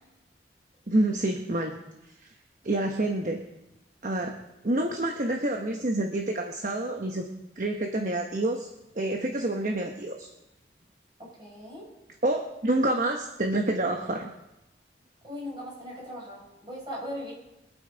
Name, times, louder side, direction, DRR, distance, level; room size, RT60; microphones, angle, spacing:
voice 1, 0.9-1.8 2.2-2.3 2.6-3.4 4.0-4.4 4.6-7.3 7.6-8.7 8.9-10.3 12.2-14.3, right 1 dB, 45° right, 3 dB, 1.0 m, -27 dB
voice 2, 11.2-11.9 15.2-17.3, equal, 25° right, -5 dB, 6.3 m, -39 dB
24.0 x 9.1 x 4.0 m, 0.98 s
head